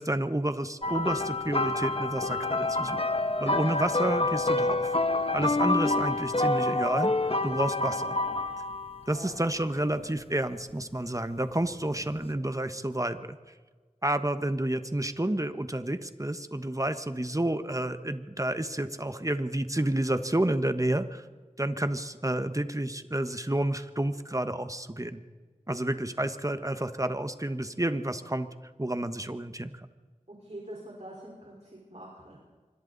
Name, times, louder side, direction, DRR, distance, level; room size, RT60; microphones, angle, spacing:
voice 1, 0.0-3.0 3.4-4.9 5.3-7.1 7.4-8.2 9.1-13.4 14.0-21.2 21.6-25.2 25.7-28.5 28.8-29.9, right 1 dB, 25° right, 10 dB, 1.3 m, -30 dB
sound 1, 0.8-9.1 10.0-10.2 12.0-12.1, left 2 dB, 45° left, 1.3 m, -27 dB
voice 2, 30.3-32.4, right 1 dB, 55° right, -2 dB, 4.7 m, -44 dB
26.5 x 24.0 x 4.1 m, 1.4 s
wide cardioid pair, 40°, 14 cm